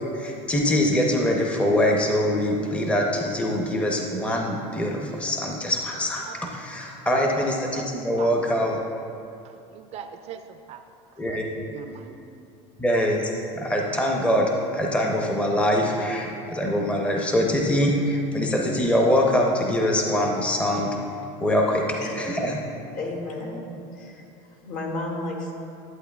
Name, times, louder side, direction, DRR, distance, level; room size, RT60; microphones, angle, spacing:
voice 1, 0.1-8.8 11.2-11.5 12.8-22.6, left 1 dB, 10° left, 0 dB, 0.7 m, -24 dB
voice 2, 7.1-7.8 8.2-8.3 9.4-10.8 11.3-11.4 11.7-12.2, right 9 dB, 45° right, 8 dB, 0.4 m, -41 dB
voice 3, 22.0-22.4 22.9-25.5, left 2 dB, 60° left, 0 dB, 1.7 m, -33 dB
11.0 x 8.3 x 2.3 m, 2.6 s
supercardioid pair, 130°, 15 cm